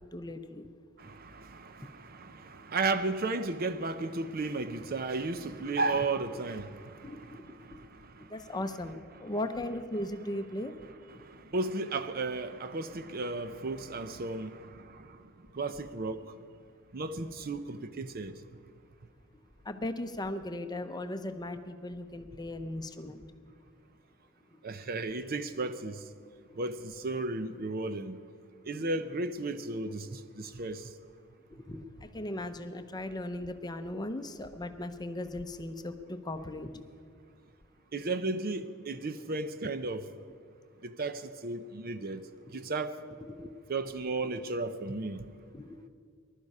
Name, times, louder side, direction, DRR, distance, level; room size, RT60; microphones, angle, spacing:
voice 1, 0.1-0.7 1.0-1.1 5.6-5.7 7.0-7.4 7.7-7.8 8.3-10.9 19.6-23.2 28.8-29.1 31.7-36.8 43.3-43.5 45.5-45.9, left 1 dB, 20° left, 0.7 m, -38 dB
voice 2, 1.0-8.4 11.1-15.3 15.5-16.3 16.9-18.4 24.6-26.0 26.6-28.2 28.6-30.9 37.9-40.1 40.8-42.2 42.5-43.0 43.7-45.3, right 3 dB, 45° right, 0.6 m, -34 dB
20.0 x 12.0 x 5.5 m
head